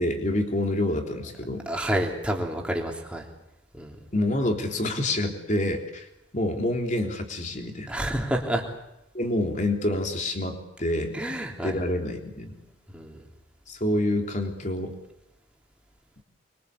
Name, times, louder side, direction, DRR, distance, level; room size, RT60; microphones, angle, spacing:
voice 1, 0.0-1.7 4.1-6.1 6.3-7.9 9.1-11.2 11.6-12.6 13.7-14.9, left 1 dB, 40° left, 3 dB, 3.6 m, -27 dB
voice 2, 1.7-3.3 3.7-4.0 7.9-8.6 11.1-11.8 12.9-13.2, right 1 dB, 5° right, 1 dB, 3.4 m, -29 dB
25.0 x 23.5 x 8.3 m, 0.88 s
head